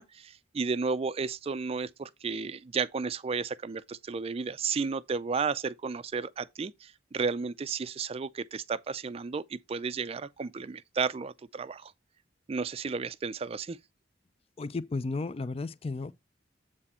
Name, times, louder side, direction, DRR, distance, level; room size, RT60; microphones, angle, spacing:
voice 1, 0.0-11.9 12.5-13.8, right 5 dB, 35° right, 0.4 m, -33 dB
voice 2, 14.6-16.1, left 3 dB, 35° left, 0.4 m, -33 dB
7.7 x 4.2 x 4.3 m
head